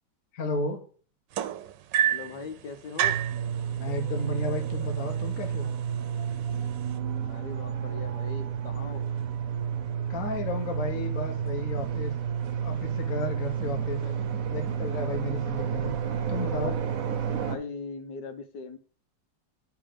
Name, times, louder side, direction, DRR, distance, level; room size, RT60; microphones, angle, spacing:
voice 1, 0.3-0.8 3.7-5.8 10.1-12.1 12.6-14.0 14.5-15.9 16.3-16.8, left 2 dB, 55° left, 3 dB, 1.3 m, -33 dB
sound 1, 1.3-2.4 3.0-3.4 4.4-4.5 4.9-5.3 6.0-6.1, right 11 dB, 80° right, 1.2 m, -26 dB
voice 2, 2.1-3.2 7.2-9.0 13.7-14.4 17.4-18.8, left 4 dB, 75° left, 8 dB, 1.5 m, -40 dB
sound 2, 3.0-17.6, right 8 dB, 60° right, 1.1 m, -31 dB
9.4 x 3.5 x 5.0 m, 0.42 s
omnidirectional pair, 1.9 m